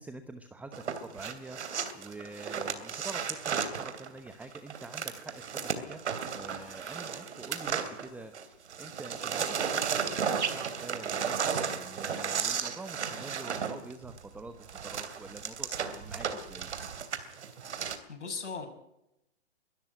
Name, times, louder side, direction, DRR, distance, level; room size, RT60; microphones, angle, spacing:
voice 1, 0.0-1.6 1.9-14.5 14.8-16.7, right 2 dB, 5° right, 9 dB, 0.9 m, -46 dB
sound 1, 0.7-8.4 8.7-18.0, right 7 dB, 75° right, 3.0 m, -34 dB
voice 2, 17.7-18.7, left 5 dB, 85° left, 5 dB, 6.2 m, -39 dB
22.5 x 13.0 x 9.1 m, 0.85 s
hypercardioid pair, 130°, 35 cm